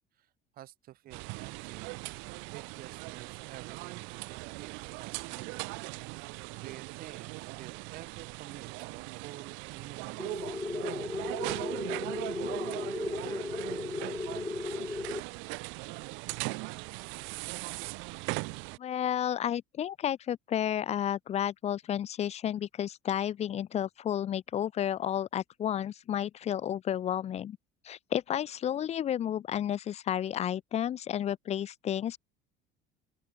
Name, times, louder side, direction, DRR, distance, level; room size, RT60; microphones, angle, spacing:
voice 1, 0.2-2.0 2.5-5.6 6.5-10.5 10.9-15.2, right 14 dB, 50° right, 6.8 m, -50 dB
sound 1, 1.1-18.8, right 31 dB, 80° right, 2.7 m, -39 dB
sound 2, 10.2-15.2, left 3 dB, 15° left, 5.8 m, -36 dB
voice 2, 18.8-27.6 27.8-32.2, left 10 dB, 35° left, 1.0 m, -32 dB
open air
cardioid pair, 150°, 19 cm